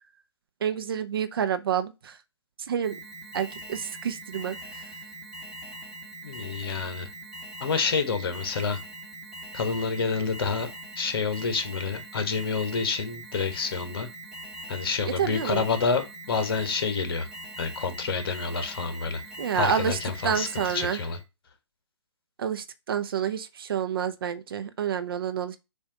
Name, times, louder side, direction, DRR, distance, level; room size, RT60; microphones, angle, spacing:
voice 1, 0.6-2.2 2.7-3.0 3.3-4.8 15.0-15.6 19.4-20.0 20.2-21.0 22.4-25.6, right 8 dB, 55° right, 0.7 m, -28 dB
Alarm, 2.8-21.2, right 2 dB, 5° right, 1.6 m, -42 dB
voice 2, 6.2-7.1 7.6-8.8 9.5-10.7 11.0-14.1 14.7-17.3 17.6-19.2 19.5-21.2, left 5 dB, 55° left, 1.3 m, -28 dB
7.2 x 2.7 x 4.9 m
figure-of-eight pair, 135°, 15 cm